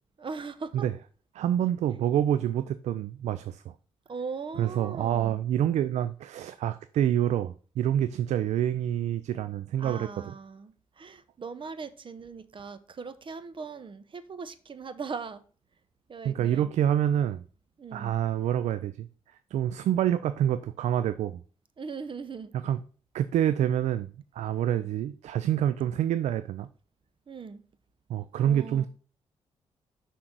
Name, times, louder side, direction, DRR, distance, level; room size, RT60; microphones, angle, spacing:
voice 1, 0.2-0.8 4.1-5.4 9.8-15.4 16.1-16.7 17.8-18.2 21.8-22.5 24.7-24.9 27.3-27.6 28.4-28.9, right 5 dB, 45° right, 0.8 m, -39 dB
voice 2, 1.3-3.7 4.6-10.1 16.2-17.4 17.9-19.1 19.5-21.4 22.5-22.8 23.1-24.1 24.3-26.7 28.1-28.9, right 10 dB, 80° right, 0.4 m, -27 dB
6.1 x 3.9 x 6.0 m
supercardioid pair, 55°, 12 cm